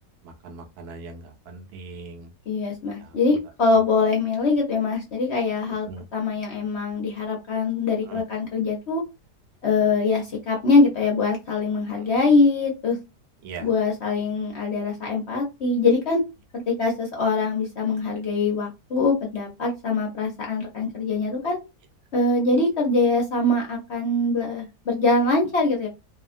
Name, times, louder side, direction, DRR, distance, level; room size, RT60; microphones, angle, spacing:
voice 1, 0.2-2.3 3.0-3.1 5.9-6.0 8.1-8.2 12.0-12.1 13.4-13.7, right 3 dB, 70° right, 5 dB, 1.1 m, -40 dB
voice 2, 2.5-9.0 9.6-13.0 13.6-16.2 16.5-21.6 22.1-25.9, left 3 dB, 55° left, 0 dB, 0.8 m, -23 dB
2.8 x 2.3 x 2.4 m, 0.25 s
omnidirectional pair, 1.8 m